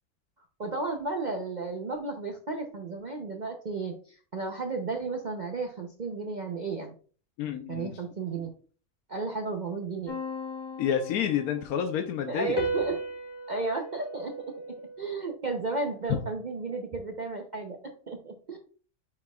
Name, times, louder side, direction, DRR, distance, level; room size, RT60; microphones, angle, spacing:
voice 1, 0.6-6.9 7.7-8.5 9.1-10.2 12.3-13.0 13.5-14.3 14.8-17.8 18.1-18.6, right 3 dB, 45° right, 2 dB, 0.6 m, -33 dB
voice 2, 7.4-8.0 10.8-12.6, left 8 dB, 85° left, 5 dB, 1.2 m, -29 dB
sound 1, 10.1-11.8 12.6-15.2, right 1 dB, 20° left, 0.7 m, -36 dB
9.6 x 4.4 x 2.3 m, 0.41 s
omnidirectional pair, 1.5 m